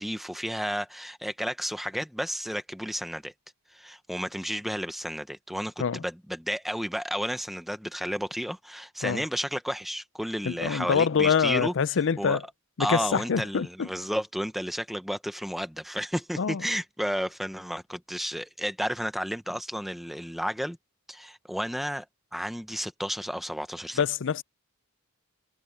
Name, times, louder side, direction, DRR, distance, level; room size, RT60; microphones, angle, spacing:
voice 1, 0.0-3.3 3.7-12.4 12.8-20.8 21.1-22.1 22.3-24.0, equal, ahead, 0.8 m, -32 dB
voice 2, 10.4-12.4 12.8-13.9 16.4-16.6 24.0-24.4, left 6 dB, 60° left, 0.5 m, -25 dB
head